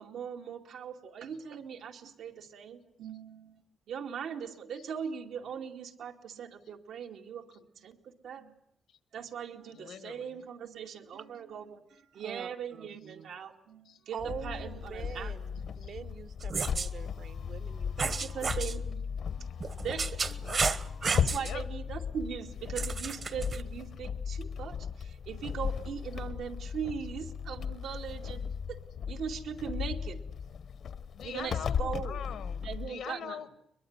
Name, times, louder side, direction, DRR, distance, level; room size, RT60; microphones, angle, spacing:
voice 1, 0.0-3.6 3.9-8.6 9.1-15.6 17.4-17.6 18.0-19.3 19.8-20.2 21.1-28.8 29.1-30.2 31.2-32.2 32.6-33.4, right 7 dB, 85° right, 2.5 m, -40 dB
voice 2, 9.8-10.3 13.9-14.0 20.4-20.7 21.4-21.6 31.1-33.5, left 9 dB, 80° left, 1.4 m, -42 dB
voice 3, 12.2-13.3 14.1-15.5 15.8-18.5, right 7 dB, 60° right, 1.2 m, -44 dB
sound 1, 14.2-32.9, left 7 dB, 60° left, 0.9 m, -36 dB
sound 2, 16.4-16.9 18.0-18.8 19.6-21.5 22.8-23.6, right 5 dB, 40° right, 1.1 m, -32 dB
22.5 x 22.0 x 9.6 m
wide cardioid pair, 160°, 0 cm